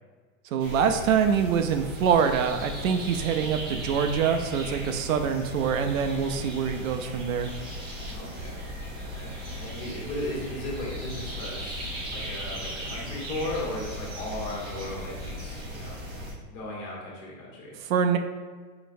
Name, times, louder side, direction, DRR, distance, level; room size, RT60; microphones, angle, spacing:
voice 1, 0.5-7.5 17.8-18.2, right 7 dB, 70° right, 6 dB, 0.5 m, -25 dB
sound 1, 0.6-16.3, equal, 15° right, 0.4 m, -37 dB
voice 2, 8.1-8.6 9.0-16.0 16.5-17.8, left 1 dB, 40° left, -3 dB, 1.3 m, -36 dB
3.9 x 3.9 x 2.6 m, 1.5 s
supercardioid pair, 145°, 42 cm